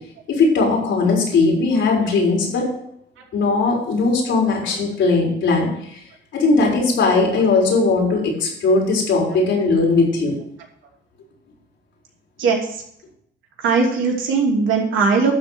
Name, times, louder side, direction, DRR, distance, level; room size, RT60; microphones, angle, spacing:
voice 1, 0.3-2.7 3.3-6.0 6.3-10.3, left 3 dB, 70° left, -2 dB, 4.4 m, -18 dB
voice 2, 13.6-15.4, right 4 dB, 80° right, -1 dB, 2.8 m, -19 dB
11.5 x 4.6 x 7.9 m, 0.71 s
cardioid pair, 90°, 20 cm